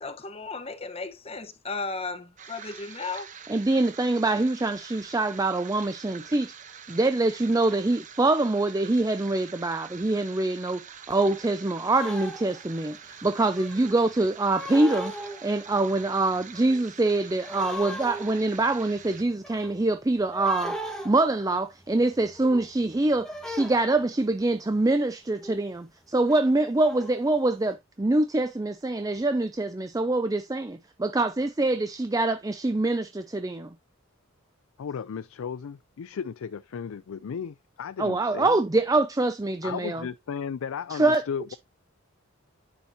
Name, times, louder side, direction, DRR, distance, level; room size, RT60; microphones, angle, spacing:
voice 1, 0.0-3.3, left 4 dB, 30° left, 1.1 m, -35 dB
sound 1, 2.4-19.2, right 7 dB, 35° right, 0.9 m, -46 dB
voice 2, 3.5-6.5 6.9-15.1 15.4-20.8 21.0-33.7 38.0-40.1 40.9-41.2, right 2 dB, 15° right, 0.4 m, -25 dB
sound 2, 11.9-12.8 13.6-14.0 14.5-15.7 16.0-17.0 17.4-24.5 25.4-25.8 26.0-27.5, left 1 dB, 5° left, 1.7 m, -38 dB
voice 3, 34.8-38.6 39.6-41.6, left 7 dB, 75° left, 0.4 m, -35 dB
9.7 x 5.7 x 2.8 m
head